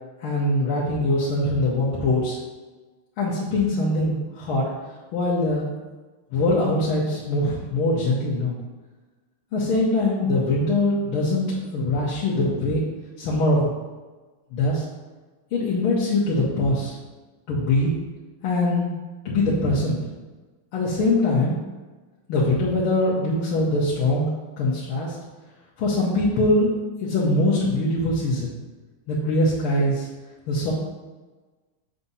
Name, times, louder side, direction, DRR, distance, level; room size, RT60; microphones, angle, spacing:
voice 1, 0.2-2.4 3.2-4.7 5.1-5.7 6.3-8.6 9.5-11.4 11.7-12.8 13.2-13.7 14.5-14.8 15.5-17.0 17.5-17.9 18.4-18.9 19.3-20.0 20.7-21.6 22.3-24.3 24.6-25.2 25.8-28.5 29.1-30.1 30.5-30.7, left 2 dB, 85° left, -7 dB, 1.9 m, -22 dB
7.5 x 2.7 x 5.5 m, 1.3 s
omnidirectional pair, 2.3 m